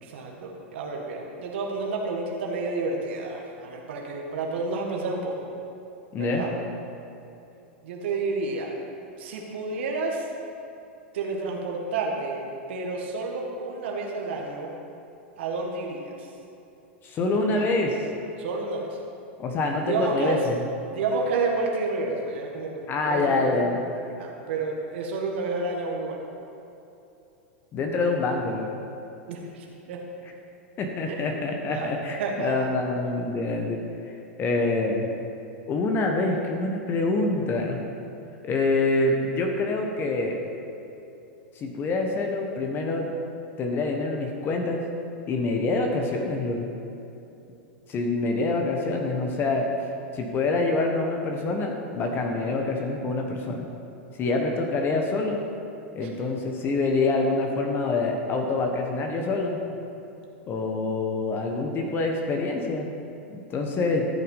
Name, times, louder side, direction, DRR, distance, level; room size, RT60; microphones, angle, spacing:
voice 1, 0.0-5.5 6.2-6.5 7.8-8.7 9.2-10.3 11.1-12.4 12.7-14.7 15.4-16.3 17.3-17.7 18.4-19.0 19.8-20.5 20.9-23.6 24.1-26.2 29.3-30.0 31.1-31.2 31.6-31.9 32.2-32.7 54.2-54.3 56.0-56.1, right 3 dB, 70° right, 0 dB, 1.5 m, -30 dB
voice 2, 6.1-6.4 17.0-18.1 19.4-20.5 22.9-23.8 27.7-28.7 30.8-35.1 35.7-37.8 38.4-40.4 41.5-43.1 43.6-44.8 45.3-46.7 47.9-49.9 50.1-53.7 54.2-55.4 55.9-59.6 60.5-62.9 63.3-64.1, left 3 dB, 35° left, 2 dB, 1.3 m, -26 dB
13.5 x 5.8 x 5.4 m, 2.8 s
hypercardioid pair, 105°, 6 cm